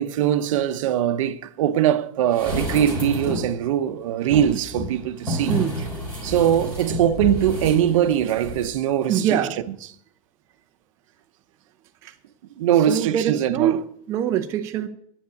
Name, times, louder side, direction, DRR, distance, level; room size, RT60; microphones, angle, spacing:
voice 1, 0.0-5.6 6.2-9.4 12.6-13.8, right 10 dB, 60° right, 0.7 m, -21 dB
sound 1, 2.3-3.6 4.2-8.7 9.0-9.1, equal, 5° left, 4.0 m, -30 dB
voice 2, 9.1-9.5 12.0-12.1 12.9-14.9, right 9 dB, 15° right, 0.4 m, -24 dB
9.5 x 7.2 x 8.1 m
supercardioid pair, 175°, 19 cm